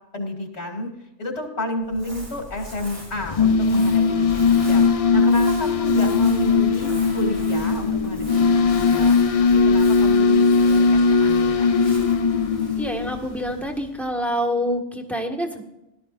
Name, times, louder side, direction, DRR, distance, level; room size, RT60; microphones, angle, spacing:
voice 1, 0.1-0.9 1.2-4.8 5.1-11.6, left 1 dB, 70° left, 2 dB, 2.8 m, -31 dB
Crumpling crinkling, 1.8-14.3, right 1 dB, 75° right, 4.7 m, -40 dB
sound 1, 3.2-13.6, left 4 dB, 40° left, 0.5 m, -19 dB
voice 2, 12.8-15.6, equal, ahead, 3 dB, 1.7 m, -26 dB
18.5 x 13.0 x 2.6 m, 0.90 s
omnidirectional pair, 1.2 m